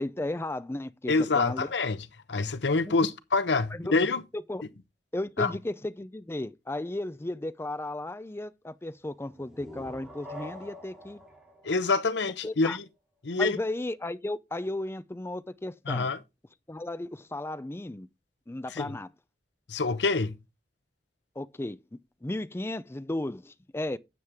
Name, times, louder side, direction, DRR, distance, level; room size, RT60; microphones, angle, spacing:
voice 1, 0.0-1.7 2.9-3.1 3.7-3.9 4.3-4.6 5.1-11.2 12.4-12.8 13.4-16.1 16.7-18.1 18.5-19.1 21.4-24.0, left 1 dB, 15° left, 0.5 m, -35 dB
voice 2, 1.1-2.0 2.3-4.2 5.4-5.5 11.6-12.8 13.2-13.6 15.9-16.2 18.7-19.0 19.7-20.4, left 3 dB, 75° left, 0.8 m, -26 dB
sound 1, 9.3-12.8, left 1 dB, 5° right, 3.8 m, -46 dB
9.6 x 7.4 x 3.5 m
head